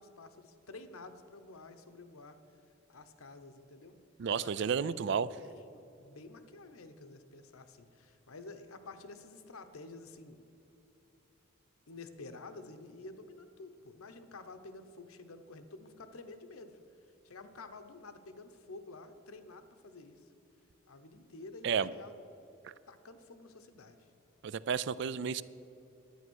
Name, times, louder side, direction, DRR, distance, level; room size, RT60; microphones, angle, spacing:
voice 1, 0.0-2.4 2.9-3.9 4.2-10.4 11.9-16.8 17.2-20.3 20.9-22.1 22.9-24.1, left 3 dB, 85° left, 9 dB, 0.9 m, -50 dB
voice 2, 4.2-5.3 21.6-21.9 24.4-25.4, right 6 dB, 55° right, 18 dB, 0.3 m, -31 dB
11.0 x 9.4 x 6.3 m, 3.0 s
head